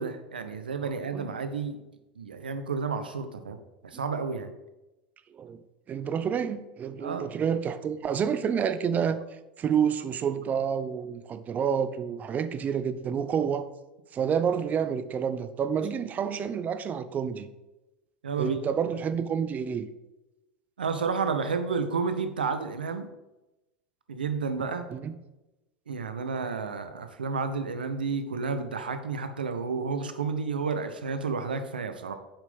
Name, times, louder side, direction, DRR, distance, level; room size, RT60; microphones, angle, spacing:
voice 1, 0.0-1.8 2.2-3.6 3.8-4.5 7.0-7.3 18.2-18.6 20.8-23.1 24.1-24.9 25.9-32.1, right 5 dB, 90° right, 9 dB, 0.8 m, -31 dB
voice 2, 5.9-9.2 9.6-13.7 14.1-17.5 18.4-19.9 24.9-25.2, right 7 dB, 35° right, 12 dB, 0.7 m, -29 dB
7.2 x 5.3 x 5.3 m, 1.0 s
hypercardioid pair, 85°, 5 cm